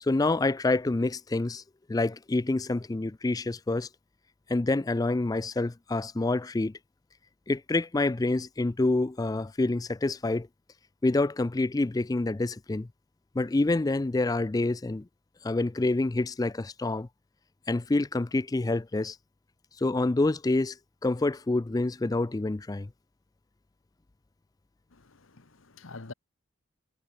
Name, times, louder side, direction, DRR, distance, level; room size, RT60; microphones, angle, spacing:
voice 1, 0.0-1.6 1.9-3.9 4.5-6.7 7.5-10.5 11.0-12.9 13.3-15.1 15.4-17.1 17.7-19.2 19.8-20.8 21.0-22.9, left 2 dB, 20° left, 0.4 m, -27 dB
voice 2, 24.9-26.1, left 3 dB, 80° left, 1.3 m, -46 dB
head